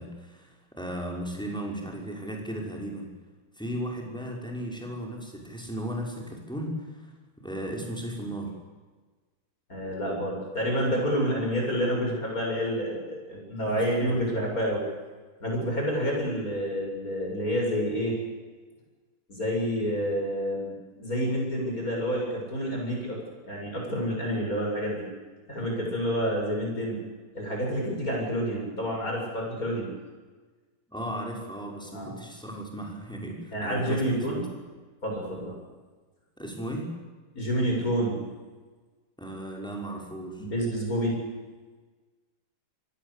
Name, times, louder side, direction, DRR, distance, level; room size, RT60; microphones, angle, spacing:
voice 1, 0.0-3.1 3.6-8.5 13.6-14.4 30.9-34.2 36.4-36.9 39.2-40.4, right 1 dB, ahead, 0 dB, 5.5 m, -36 dB
voice 2, 9.7-14.8 15.4-18.2 19.3-25.1 25.5-27.0 27.3-29.9 31.9-32.2 33.5-34.5 35.0-35.5 37.3-38.2 40.4-41.2, equal, 40° left, -1 dB, 8.0 m, -28 dB
27.0 x 19.0 x 8.5 m, 1.3 s
omnidirectional pair, 2.4 m